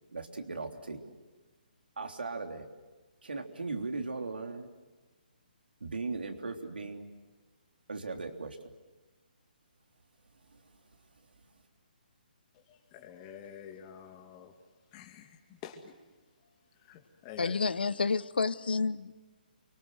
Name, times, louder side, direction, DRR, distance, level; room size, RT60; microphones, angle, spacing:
voice 1, 0.1-1.1 2.0-2.7 3.2-4.7 5.8-7.1 7.9-8.7 10.4-10.8 11.2-11.5, right 3 dB, 85° right, 3.4 m, -38 dB
voice 2, 12.5-14.5 14.9-15.9 16.7-17.6, left 8 dB, 25° left, 2.4 m, -48 dB
voice 3, 17.4-19.1, left 4 dB, 80° left, 1.0 m, -29 dB
30.0 x 24.0 x 7.9 m
hypercardioid pair, 150°, 5 cm